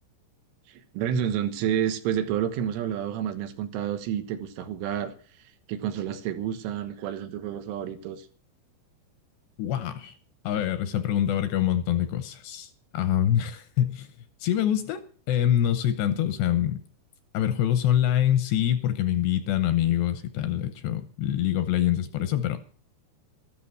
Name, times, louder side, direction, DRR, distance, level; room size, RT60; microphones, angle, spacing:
voice 1, 0.7-8.3, right 9 dB, 85° right, 3.8 m, -30 dB
voice 2, 9.6-10.2 10.4-14.1 14.4-15.0 15.3-16.8 17.3-22.6, left 11 dB, 80° left, 2.7 m, -25 dB
13.5 x 13.0 x 6.1 m
omnidirectional pair, 5.6 m